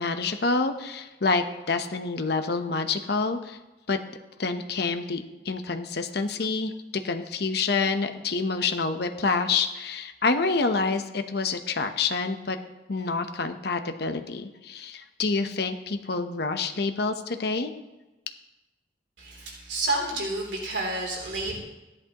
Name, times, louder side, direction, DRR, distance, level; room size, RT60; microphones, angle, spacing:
voice 1, 0.0-3.6 3.9-4.0 4.4-12.6 12.9-17.7, left 4 dB, 60° left, 7 dB, 0.8 m, -27 dB
voice 2, 19.2-21.6, right 2 dB, 70° right, -2 dB, 3.0 m, -30 dB
14.0 x 11.0 x 2.9 m, 1.1 s
head